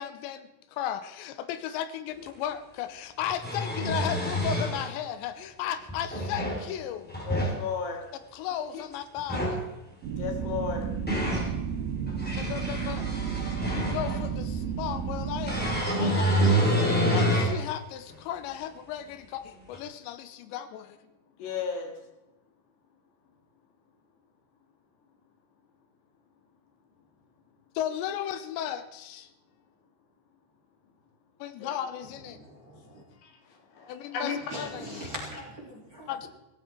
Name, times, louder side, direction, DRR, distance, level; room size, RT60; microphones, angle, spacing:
voice 1, 0.0-7.2 8.3-9.7 12.4-13.1 13.6-21.0 27.8-29.3 31.4-32.4 33.9-35.0 36.1-36.3, left 10 dB, 90° left, 11 dB, 3.2 m, -35 dB
sound 1, 2.3-2.4 3.2-4.9 5.9-6.6 7.1-7.6 9.2-9.6 10.6-11.5 12.1-14.3 15.5-17.6 18.1-18.2 19.7-19.8, equal, 5° left, 2.4 m, -27 dB
voice 2, 7.3-8.1 8.7-8.8 9.9-10.9 21.4-22.0 31.6-31.8 33.2-34.4, left 6 dB, 70° left, 4 dB, 4.1 m, -34 dB
sound 2, 10.0-15.8, right 7 dB, 65° right, 2.9 m, -32 dB
voice 3, 32.3-33.0 34.5-36.3, equal, 20° right, -3 dB, 3.2 m, -41 dB
17.0 x 15.0 x 4.5 m, 0.98 s
omnidirectional pair, 5.0 m